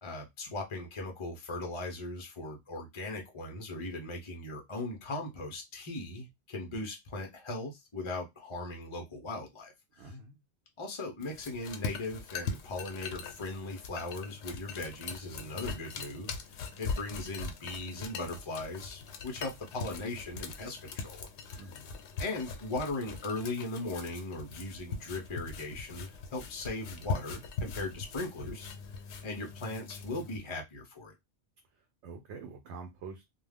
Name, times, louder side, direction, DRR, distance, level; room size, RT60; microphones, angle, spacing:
voice 1, 0.0-10.1 10.8-16.3 16.8-21.6 22.2-28.7 29.2-31.1, left 2 dB, 35° left, 0.5 m, -38 dB
voice 2, 9.9-10.4 21.5-21.9 31.7-33.3, right 4 dB, 85° right, 0.9 m, -46 dB
sound 1, 11.2-30.4, left 4 dB, 85° left, 0.9 m, -41 dB
2.3 x 2.2 x 3.3 m
omnidirectional pair, 1.1 m